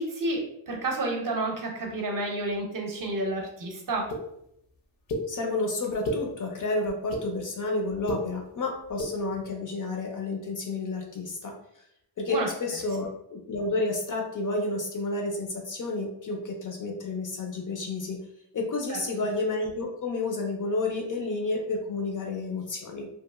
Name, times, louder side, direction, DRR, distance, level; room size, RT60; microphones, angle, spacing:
voice 1, 0.0-4.1 12.3-12.5 18.9-19.0, right 2 dB, 45° right, 1 dB, 0.6 m, -30 dB
sound 1, 4.1-4.2 5.1-5.2 5.8-6.2 6.9-7.2 7.9-8.2 8.9-9.1, left 1 dB, 70° left, 0.7 m, -30 dB
voice 2, 5.3-11.5 12.2-18.2 18.5-23.1, left 2 dB, 45° left, 1 dB, 0.5 m, -30 dB
2.8 x 2.4 x 2.3 m, 0.76 s
wide cardioid pair, 130°, 48 cm